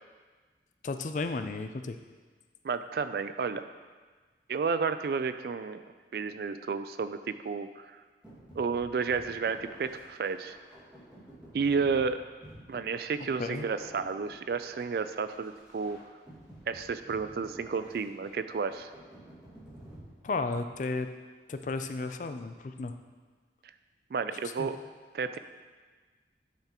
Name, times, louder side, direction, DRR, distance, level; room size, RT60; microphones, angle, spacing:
voice 1, 0.8-2.0 13.4-13.7 20.2-21.1 21.5-22.9 24.6-24.7, left 3 dB, 45° left, 8 dB, 0.4 m, -33 dB
voice 2, 2.6-3.6 4.5-5.8 6.1-7.9 8.6-10.6 11.5-12.2 12.7-16.0 16.7-18.9 24.1-24.8 25.1-25.4, right 5 dB, 55° right, 11 dB, 0.3 m, -31 dB
sound 1, 8.2-20.8, right 1 dB, 5° right, 2.0 m, -52 dB
9.9 x 5.8 x 3.0 m, 1.4 s
head